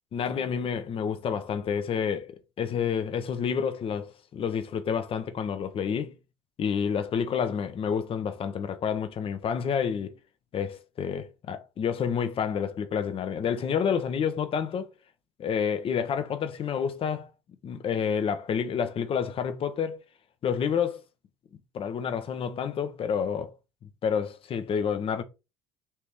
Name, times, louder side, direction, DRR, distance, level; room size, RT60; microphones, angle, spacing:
voice 1, 0.1-6.2 6.6-10.2 10.5-14.9 15.4-17.3 17.6-20.0 20.4-21.0 21.7-23.5 24.0-25.2, left 7 dB, 45° left, 0.9 m, -29 dB
4.2 x 3.1 x 3.6 m
supercardioid pair, 75°, 13 cm